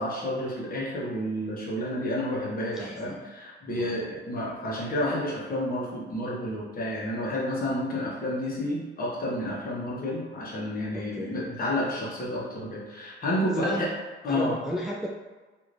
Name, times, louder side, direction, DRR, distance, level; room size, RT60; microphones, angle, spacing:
voice 1, 0.0-13.9 14.2-14.6, left 1 dB, 45° left, -5 dB, 1.1 m, -30 dB
voice 2, 2.7-3.2 3.7-4.0 10.9-11.3 13.5-13.8 14.3-15.1, equal, ahead, -3 dB, 0.3 m, -34 dB
3.1 x 2.7 x 2.6 m, 1.3 s
cardioid pair, 90°, 20 cm